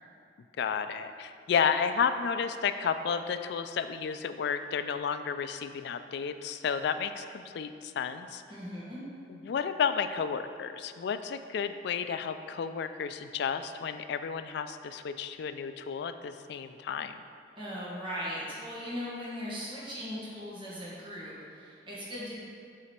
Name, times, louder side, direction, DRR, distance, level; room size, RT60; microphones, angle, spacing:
voice 1, 0.6-8.4 9.3-17.2, left 6 dB, 65° left, 10 dB, 0.3 m, -32 dB
voice 2, 8.5-9.0 17.6-22.4, equal, 30° right, -8 dB, 1.4 m, -38 dB
7.6 x 4.0 x 4.3 m, 2.4 s
head